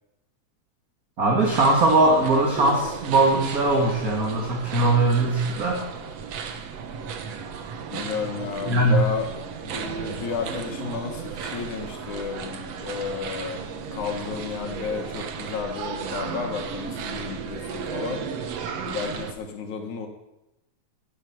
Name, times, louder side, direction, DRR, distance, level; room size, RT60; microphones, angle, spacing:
voice 1, 1.2-5.8 8.6-9.0, right 2 dB, 35° right, 0 dB, 2.1 m, -20 dB
sound 1, 1.4-19.3, right 6 dB, 65° right, 2.1 m, -34 dB
voice 2, 7.9-9.3 9.6-18.3 18.9-20.1, left 6 dB, 80° left, 4 dB, 2.9 m, -32 dB
17.0 x 8.3 x 7.5 m, 0.94 s
omnidirectional pair, 3.3 m